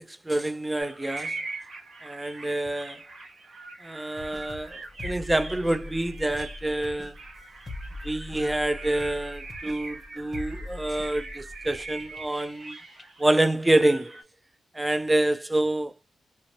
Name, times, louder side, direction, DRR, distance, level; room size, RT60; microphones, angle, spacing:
voice 1, 0.0-1.3 2.0-3.0 3.8-7.1 8.0-12.8 13.2-14.2 14.8-15.9, right 1 dB, 15° right, 0.3 m, -27 dB
sound 1, 0.8-14.2, right 3 dB, 45° right, 0.8 m, -42 dB
sound 2, 4.2-13.4 13.7-13.8, left 2 dB, 25° left, 0.7 m, -42 dB
2.7 x 2.1 x 2.9 m
cardioid pair, 80°, 0 cm